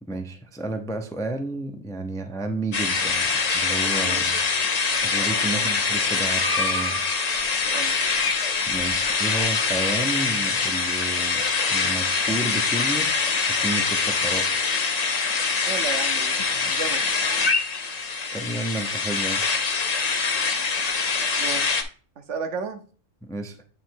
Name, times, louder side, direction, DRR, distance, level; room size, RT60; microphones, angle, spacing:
voice 1, 0.0-4.4 5.0-7.0 8.7-11.4 11.7-13.1 13.4-14.5 18.3-19.4 23.2-23.6, right 2 dB, 5° left, 5 dB, 0.4 m, -31 dB
sound 1, 2.7-21.8, left 4 dB, 40° left, 0.7 m, -24 dB
voice 2, 7.7-8.0 15.7-17.1 21.4-21.7 22.2-22.8, right 5 dB, 70° right, 7 dB, 1.2 m, -33 dB
8.1 x 3.1 x 4.5 m, 0.41 s
omnidirectional pair, 1.3 m